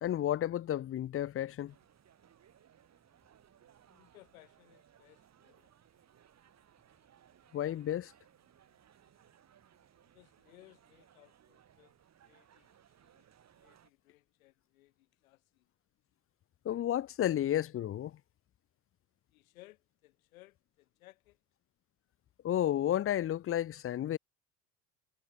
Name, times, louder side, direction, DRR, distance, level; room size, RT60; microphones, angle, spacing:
voice 1, 0.0-1.7 7.5-8.1 16.6-18.2 22.4-24.2, left 11 dB, 35° left, 0.7 m, -32 dB
sound 1, 1.7-13.9, right 9 dB, 40° right, 2.7 m, -64 dB
voice 2, 3.9-5.7 10.1-11.9 12.2-13.3 13.5-15.7 19.3-21.4, left 18 dB, 80° left, 4.0 m, -62 dB
hypercardioid pair, 70°, 41 cm